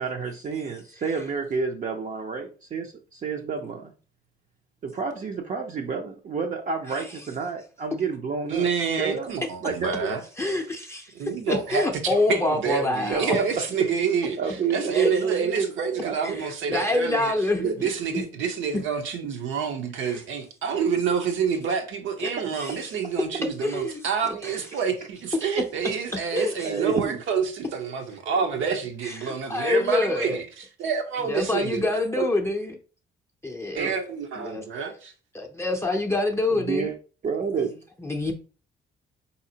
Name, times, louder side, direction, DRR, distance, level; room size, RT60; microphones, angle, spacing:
voice 1, 0.0-3.9 4.8-8.7 9.0-9.3 9.6-10.2 13.1-13.5 14.4-16.4 22.4-22.5 26.6-27.2 28.3-28.7 33.7-34.0 36.5-37.0 37.2-37.8, right 5 dB, 40° right, 0.5 m, -29 dB
voice 2, 8.5-10.2 11.1-17.3 17.6-32.3 33.7-35.1, right 6 dB, 75° right, 0.8 m, -28 dB
voice 3, 10.4-11.1 11.5-13.4 14.9-15.1 16.2-18.2 20.0-20.2 20.7-20.8 22.2-22.9 23.6-24.0 24.4-24.6 26.3-26.7 29.0-30.4 31.3-32.8 33.4-33.9 34.4-34.6 35.3-36.9 38.0-38.3, left 2 dB, 15° left, 0.5 m, -26 dB
4.1 x 2.8 x 2.7 m
cardioid pair, 90°, 20 cm